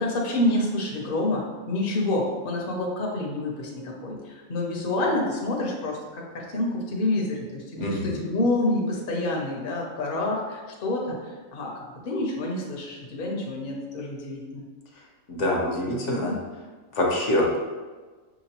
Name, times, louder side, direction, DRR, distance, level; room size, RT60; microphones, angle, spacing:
voice 1, 0.0-14.6 16.1-16.3, left 2 dB, 50° left, -1 dB, 0.8 m, -28 dB
voice 2, 7.8-8.1 15.3-16.3 16.9-17.6, left 1 dB, 65° left, -1 dB, 1.1 m, -25 dB
6.0 x 2.9 x 2.9 m, 1.3 s
omnidirectional pair, 1.4 m